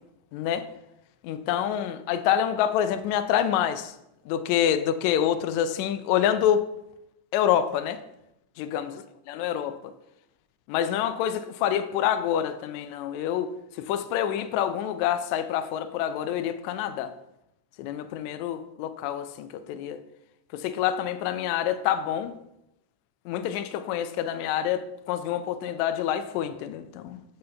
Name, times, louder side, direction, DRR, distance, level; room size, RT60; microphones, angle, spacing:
voice 1, 0.3-0.7 1.2-3.9 4.3-6.6 7.3-8.0 8.6-9.0 9.3-9.9 10.7-13.5 13.8-17.1 17.8-20.0 20.5-22.3 23.2-27.2, left 10 dB, 80° left, 1.8 m, -27 dB
6.8 x 6.6 x 3.4 m
omnidirectional pair, 3.5 m